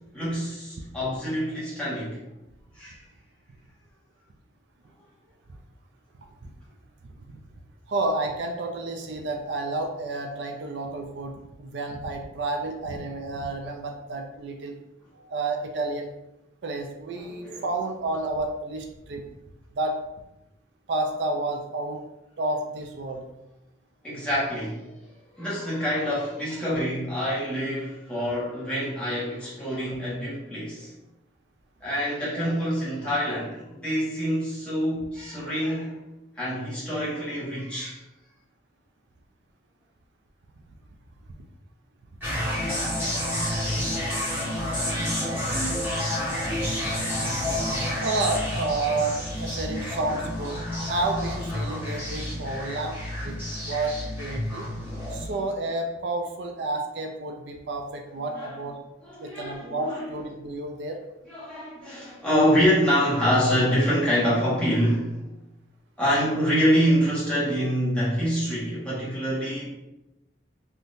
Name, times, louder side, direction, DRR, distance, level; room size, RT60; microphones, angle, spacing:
voice 1, 0.1-2.2 2.8-2.9 17.2-17.6 24.0-24.9 25.3-30.9 31.8-36.0 36.4-38.0 54.8-55.3 58.2-58.6 59.0-60.1 61.3-65.2 66.0-69.7, equal, 5° left, -9 dB, 1.2 m, -26 dB
voice 2, 7.9-11.3 11.6-14.8 15.1-16.1 16.6-19.2 19.8-20.0 20.9-22.0 22.4-23.2 33.2-33.3 48.0-52.9 53.2-53.4 53.6-54.7 55.1-58.8 59.2-61.0, right 2 dB, 70° right, 3 dB, 0.4 m, -30 dB
sound 1, 42.2-55.2, left 1 dB, 10° right, 1.4 m, -29 dB
3.5 x 2.7 x 2.6 m, 0.94 s
head